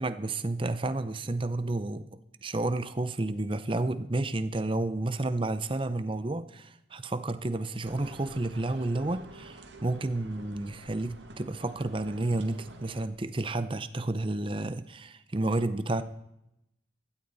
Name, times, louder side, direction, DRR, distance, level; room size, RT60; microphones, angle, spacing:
voice 1, 0.0-2.1 2.4-16.0, right 2 dB, 30° right, 0.7 m, -31 dB
sound 1, 7.8-13.1, right 2 dB, 80° right, 1.6 m, -49 dB
16.0 x 12.5 x 4.1 m
head